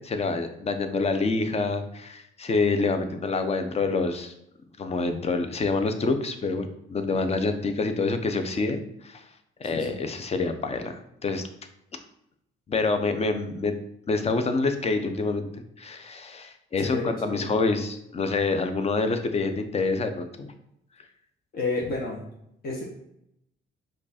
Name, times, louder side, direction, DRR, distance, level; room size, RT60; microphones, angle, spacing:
voice 1, 0.0-4.3 4.8-9.2 9.6-11.5 12.7-13.8 14.1-15.5 15.8-20.5, left 3 dB, 30° left, 7 dB, 0.6 m, -27 dB
voice 2, 9.6-10.0 16.8-17.6 21.5-22.2 22.6-22.8, left 3 dB, 50° left, -3 dB, 1.0 m, -31 dB
5.1 x 2.4 x 4.1 m, 0.78 s
cardioid pair, 90°, 20 cm